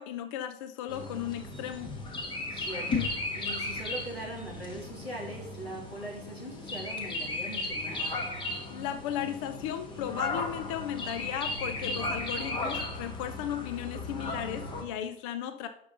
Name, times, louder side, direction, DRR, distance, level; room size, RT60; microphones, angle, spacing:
voice 1, 0.0-1.9 8.7-15.7, left 10 dB, 30° left, 10 dB, 0.5 m, -35 dB
sound 1, 0.9-14.8, left 2 dB, 15° left, 1.2 m, -35 dB
voice 2, 2.5-8.1, right 1 dB, 90° left, -1 dB, 2.9 m, -41 dB
11.5 x 5.5 x 3.9 m, 0.71 s
figure-of-eight pair, 100°, 30 cm